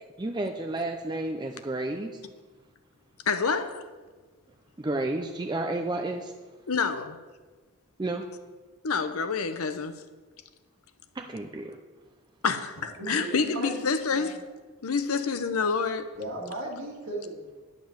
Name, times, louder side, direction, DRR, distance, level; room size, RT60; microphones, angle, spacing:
voice 1, 0.2-2.1 4.8-6.3 8.0-8.2 11.2-11.8, right 2 dB, 20° right, 0.4 m, -31 dB
voice 2, 3.3-3.8 6.7-7.2 8.8-10.0 12.4-14.4 14.8-16.1, left 5 dB, 80° left, 0.7 m, -28 dB
voice 3, 13.0-14.4 16.1-17.5, right 1 dB, 65° right, 2.4 m, -36 dB
10.5 x 5.3 x 7.4 m
head